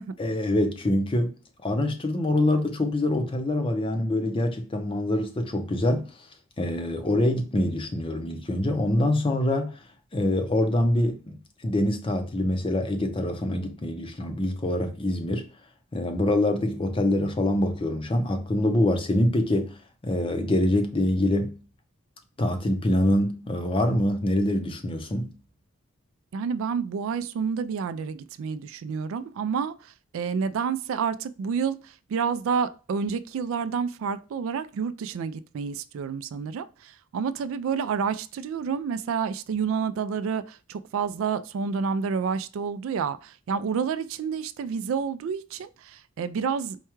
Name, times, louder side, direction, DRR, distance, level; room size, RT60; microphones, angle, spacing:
voice 1, 0.2-1.3 1.6-6.1 6.6-9.8 10.1-15.5 15.9-19.7 20.0-21.6 22.4-25.3, left 1 dB, 25° left, 0.5 m, -25 dB
voice 2, 26.3-46.8, right 6 dB, 70° right, 0.3 m, -29 dB
4.6 x 2.2 x 3.0 m
head